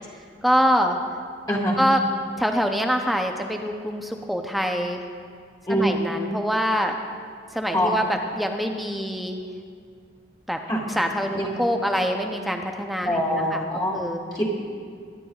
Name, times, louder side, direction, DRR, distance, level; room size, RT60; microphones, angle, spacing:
voice 1, 0.4-1.0 1.8-2.0 2.4-5.0 5.7-7.0 7.5-9.4 10.5-10.6 10.9-13.6 13.9-14.2, equal, ahead, 3 dB, 0.5 m, -25 dB
voice 2, 5.7-6.0 7.7-7.9 10.7-10.8 11.3-11.5 13.0-13.9 14.3-14.5, equal, 20° left, -3 dB, 1.6 m, -23 dB
22.5 x 10.5 x 2.3 m, 2.2 s
head